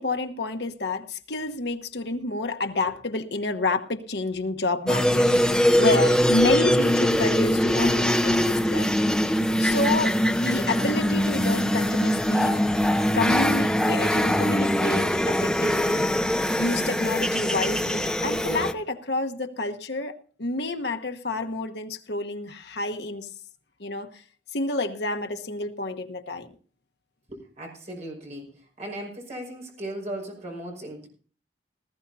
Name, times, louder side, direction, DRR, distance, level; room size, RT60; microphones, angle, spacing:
voice 1, 0.0-9.2 9.6-12.5 13.1-16.1 16.5-23.3 23.8-24.1 24.5-26.5, left 2 dB, 60° left, 1.2 m, -29 dB
sound 1, 4.9-18.7, equal, 5° left, 0.6 m, -22 dB
voice 2, 27.3-31.1, right 1 dB, 40° right, 5.4 m, -37 dB
19.0 x 14.0 x 2.7 m
head